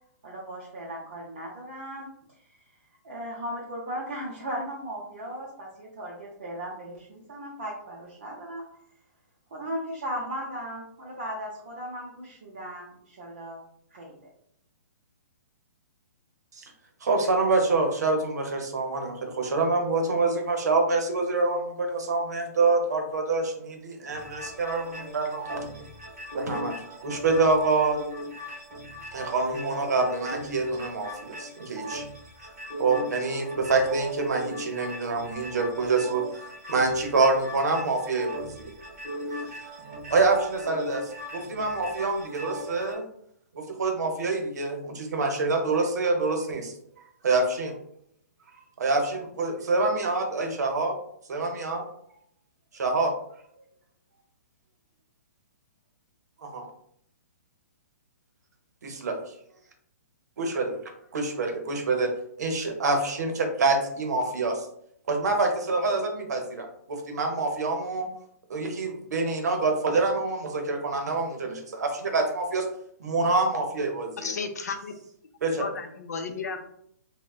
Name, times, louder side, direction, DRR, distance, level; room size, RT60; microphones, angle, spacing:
voice 1, 0.2-2.1 2.5-2.6 3.0-8.6 9.5-13.6 13.9-14.2, equal, 35° right, -4 dB, 0.5 m, -37 dB
voice 2, 17.0-25.9 26.3-26.7 27.0-28.0 29.1-32.0 32.8-36.2 36.7-38.7 40.1-43.0 43.5-46.7 47.2-47.7 48.8-51.0 51.3-51.8 52.7-53.1 56.5-56.6 58.8-59.2 60.4-60.8 61.1-62.1 62.4-64.7 65.1-68.1 68.5-72.7 73.0-74.3 75.4-75.7, right 3 dB, 70° right, 3 dB, 0.7 m, -26 dB
sound 1, 24.1-42.9, equal, 10° right, 0.8 m, -39 dB
voice 3, 74.2-74.9 75.6-76.6, left 5 dB, 70° left, 6 dB, 0.4 m, -33 dB
3.4 x 2.1 x 2.3 m, 0.70 s
hypercardioid pair, 180°, 9 cm